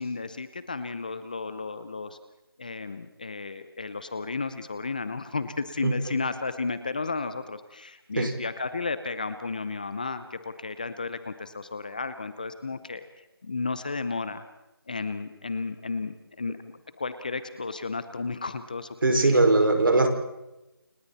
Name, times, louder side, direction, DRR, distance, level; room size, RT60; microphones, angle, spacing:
voice 1, 0.0-2.2 2.6-13.1 13.4-14.4 14.9-16.6 17.0-18.9 19.2-19.4, left 4 dB, 20° left, 12 dB, 0.7 m, -33 dB
voice 2, 5.8-6.1 8.2-8.3 19.0-20.1, right 2 dB, 60° right, 4 dB, 5.5 m, -21 dB
29.5 x 26.0 x 4.2 m, 0.95 s
figure-of-eight pair, 175°, 13 cm